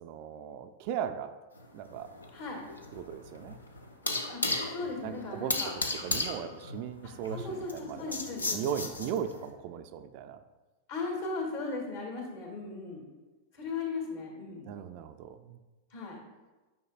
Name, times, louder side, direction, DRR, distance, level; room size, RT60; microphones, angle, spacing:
voice 1, 0.0-1.3 1.7-2.1 2.9-3.5 5.0-5.6 6.0-10.4 14.7-15.6, right 9 dB, 45° right, 9 dB, 0.3 m, -38 dB
sound 1, 1.6-9.4, left 2 dB, 75° left, 0.6 m, -35 dB
voice 2, 4.7-5.7 7.0-8.8 10.9-13.1 13.5-14.7 15.9-16.2, left 3 dB, 55° left, 0 dB, 1.9 m, -37 dB
9.2 x 5.4 x 2.4 m, 1.2 s
figure-of-eight pair, 90°, 0 cm